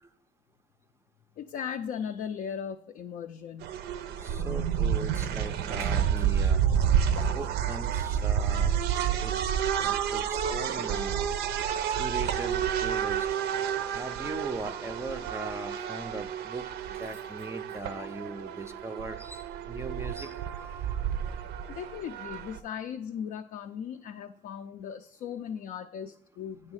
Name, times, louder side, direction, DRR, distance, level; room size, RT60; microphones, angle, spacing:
voice 1, 1.4-3.7 7.2-7.4 18.0-18.1 21.7-26.7, left 8 dB, 60° left, 0.4 m, -38 dB
sound 1, 3.6-22.6, right 8 dB, 75° right, 0.5 m, -30 dB
voice 2, 4.2-6.6 7.3-8.8 9.2-9.4 10.1-11.3 11.6-13.3 13.9-16.6 16.9-20.3, right 2 dB, 15° right, 0.4 m, -39 dB
8.8 x 3.2 x 6.2 m
cardioid pair, 110°, 17 cm